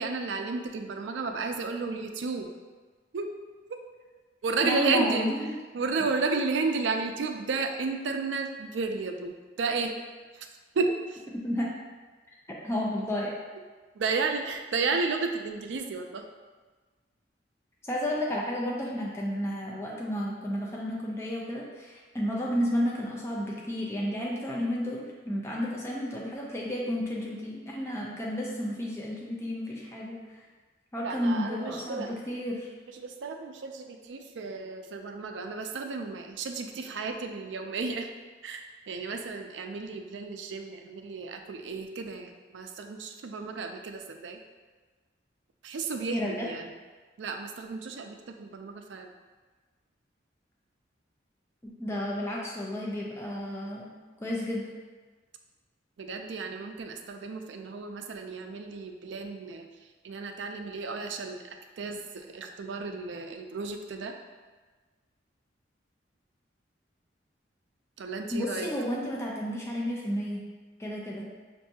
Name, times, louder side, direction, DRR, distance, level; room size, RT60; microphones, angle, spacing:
voice 1, 0.0-2.5 3.1-3.3 3.7-3.8 4.4-5.3 5.7-9.9 10.3-10.5 10.7-11.2 14.0-16.2 31.0-32.1 32.9-38.1 38.4-44.4 45.6-46.7 47.2-49.1 56.0-59.7 60.0-64.1 68.0-68.7, right 4 dB, 75° right, 5 dB, 0.4 m, -33 dB
voice 2, 4.6-5.5 11.4-11.7 12.5-13.3 17.8-30.2 30.9-32.7 46.0-46.5 51.6-53.9 54.2-54.7 68.3-70.5 70.8-71.3, equal, 15° left, -4 dB, 0.5 m, -32 dB
5.6 x 2.6 x 2.7 m, 1.3 s
head